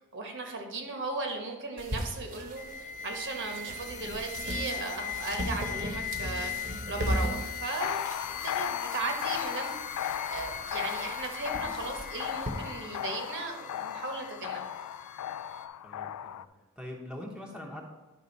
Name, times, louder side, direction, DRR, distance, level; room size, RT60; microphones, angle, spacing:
voice 1, 0.0-8.0 8.3-14.6, right 3 dB, 55° right, 3 dB, 1.3 m, -37 dB
sound 1, 1.8-12.5, equal, 40° right, 1.1 m, -38 dB
sound 2, 2.6-15.7, left 7 dB, 35° left, 0.5 m, -40 dB
sound 3, 7.8-16.4, left 10 dB, 85° left, 0.3 m, -36 dB
voice 2, 15.8-17.8, left 1 dB, 5° right, -1 dB, 0.9 m, -43 dB
11.0 x 3.8 x 5.3 m, 1.2 s
head